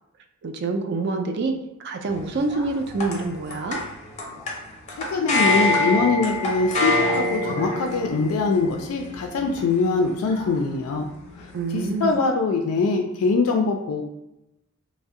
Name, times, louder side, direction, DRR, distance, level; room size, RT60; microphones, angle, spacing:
voice 1, 0.4-1.5 1.8-3.8 11.5-12.1, right 3 dB, 50° right, 5 dB, 0.3 m, -26 dB
sound 1, 2.1-12.1, left 2 dB, 35° left, 0.6 m, -27 dB
voice 2, 5.0-11.1 11.4-14.0, left 4 dB, 80° left, 3 dB, 0.3 m, -23 dB
2.6 x 2.0 x 3.6 m, 0.90 s
head